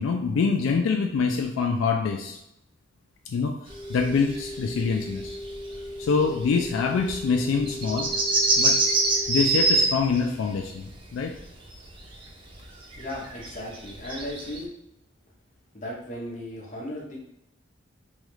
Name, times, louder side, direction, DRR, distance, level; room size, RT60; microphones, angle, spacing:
voice 1, 0.0-2.4 3.3-3.5 3.9-5.3 6.0-8.1 8.6-8.8 9.3-11.3, left 5 dB, 80° left, 3 dB, 0.3 m, -25 dB
sound 1, 3.7-9.8, left 1 dB, 10° right, 1.0 m, -38 dB
sound 2, 3.7-10.2 10.5-11.0 11.4-12.6 12.9-14.6, right 3 dB, 25° right, 0.4 m, -26 dB
voice 2, 13.0-14.7 15.7-17.2, left 1 dB, 40° left, -3 dB, 0.7 m, -36 dB
3.1 x 2.3 x 3.0 m, 0.82 s
head